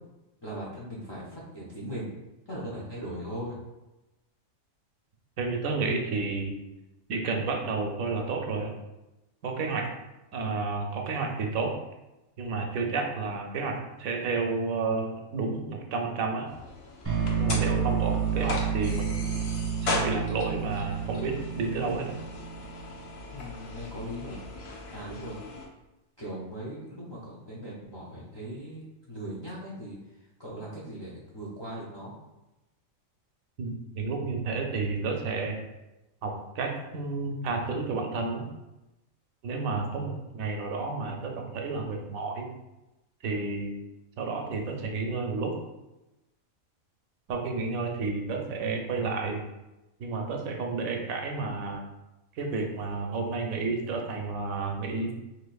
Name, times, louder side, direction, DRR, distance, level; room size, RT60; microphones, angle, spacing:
voice 1, 0.4-2.1 2.5-3.6 23.3-24.5 24.9-25.4 26.2-28.8 29.1-30.0 30.4-32.1, equal, 40° left, -7 dB, 0.3 m, -39 dB
voice 2, 5.4-6.6 7.1-8.7 9.4-9.9 10.3-11.7 12.4-16.5 17.4-19.1 19.8-22.2 33.6-35.6 36.2-38.5 39.4-42.5 43.2-43.8 44.2-45.5 47.3-49.5 50.0-51.9 52.4-55.1, right 4 dB, 80° right, 2 dB, 1.0 m, -31 dB
sound 1, 16.5-25.7, left 3 dB, 60° left, 0.7 m, -38 dB
sound 2, 17.0-23.1, right 7 dB, 15° right, 0.7 m, -30 dB
4.2 x 2.8 x 2.3 m, 0.99 s
omnidirectional pair, 1.4 m